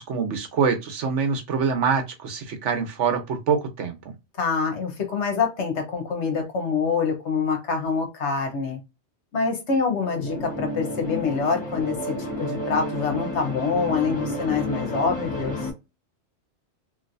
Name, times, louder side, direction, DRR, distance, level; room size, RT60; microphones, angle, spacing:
voice 1, 0.0-4.1, right 6 dB, 80° right, 5 dB, 1.1 m, -25 dB
voice 2, 4.4-8.8 9.3-15.6, left 5 dB, 75° left, 4 dB, 1.2 m, -26 dB
sound 1, 10.0-15.7, left 1 dB, 10° left, 1.7 m, -31 dB
3.1 x 2.7 x 2.5 m, 0.24 s
omnidirectional pair, 1.2 m